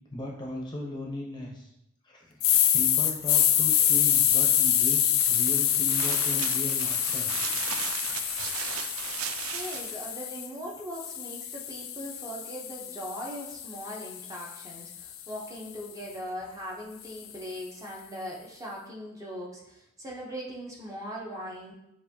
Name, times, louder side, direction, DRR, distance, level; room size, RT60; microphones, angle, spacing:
voice 1, 0.1-1.7 2.0-2.5 2.7-7.3, left 1 dB, 20° left, -1 dB, 0.7 m, -37 dB
sound 1, 2.4-10.5 11.0-15.2, left 10 dB, 70° left, 0.4 m, -26 dB
sound 2, 5.2-10.1, right 9 dB, 80° right, 0.3 m, -36 dB
voice 2, 9.5-21.7, equal, 15° right, -3 dB, 0.8 m, -40 dB
6.9 x 2.6 x 2.7 m, 0.83 s
head